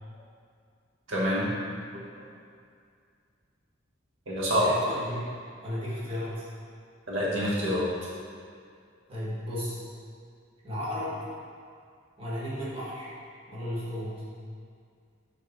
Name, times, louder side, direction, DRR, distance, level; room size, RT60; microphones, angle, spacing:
voice 1, 1.1-1.5 1.9-2.3 4.3-4.7 7.1-7.9, equal, 90° right, -6 dB, 1.2 m, -27 dB
voice 2, 4.6-6.4 9.1-9.8 10.6-11.2 12.2-13.1 13.5-14.2, equal, 30° right, -9 dB, 1.6 m, -34 dB
4.9 x 4.4 x 5.1 m, 2.2 s
head